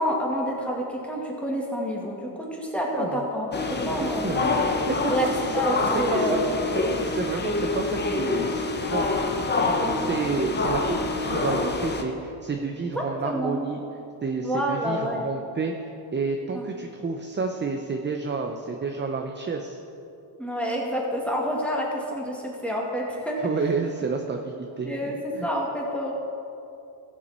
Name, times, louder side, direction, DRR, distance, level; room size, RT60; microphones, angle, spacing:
voice 1, 0.0-4.3 5.1-6.4 13.2-13.6 14.4-15.3 16.5-16.7 20.4-23.4 24.8-25.2 25.4-26.1, equal, 5° left, -2 dB, 2.3 m, -28 dB
sound 1, 3.5-12.0, left 3 dB, 20° left, 1.0 m, -26 dB
voice 2, 4.2-5.4 6.1-6.4 6.7-9.4 9.8-11.0 11.2-13.8 14.2-15.7 16.1-19.8 23.4-25.5, right 4 dB, 20° right, 4 dB, 0.7 m, -30 dB
15.5 x 7.3 x 4.4 m, 2.8 s
cardioid pair, 90°, 49 cm